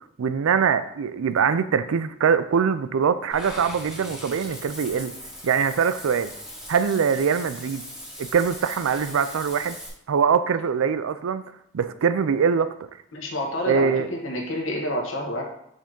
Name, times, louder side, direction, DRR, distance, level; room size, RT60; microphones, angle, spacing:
voice 1, 0.2-5.1 5.4-6.3 6.7-7.8 8.2-9.8 10.1-11.4 11.7-12.7 13.6-14.1, right 6 dB, 80° right, 13 dB, 0.4 m, -23 dB
Water / Bathtub (filling or washing), 3.3-9.9, equal, 5° right, 1.0 m, -39 dB
voice 2, 13.1-15.4, equal, 70° left, 0 dB, 1.3 m, -28 dB
5.2 x 3.6 x 5.2 m, 0.74 s
head